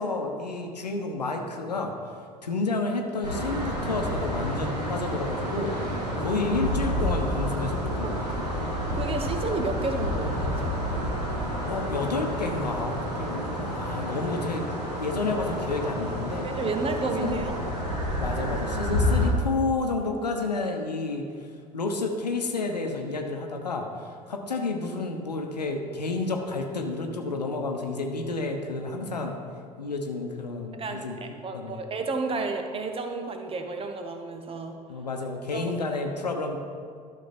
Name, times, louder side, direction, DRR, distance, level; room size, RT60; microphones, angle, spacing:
voice 1, 0.0-1.9 2.4-5.7 6.2-8.4 11.7-14.7 15.0-16.5 17.2-17.4 18.2-21.2 21.7-29.3 29.8-31.2 31.5-31.8 34.9-36.6, left 3 dB, 80° left, 3 dB, 1.0 m, -30 dB
sound 1, 3.2-19.3, equal, 90° right, 2.6 m, -29 dB
voice 2, 8.9-10.7 16.4-17.5 30.7-34.8 35.5-35.7, right 3 dB, 25° right, 5 dB, 1.1 m, -31 dB
12.0 x 6.4 x 4.3 m, 2.2 s
figure-of-eight pair, 70°, 21 cm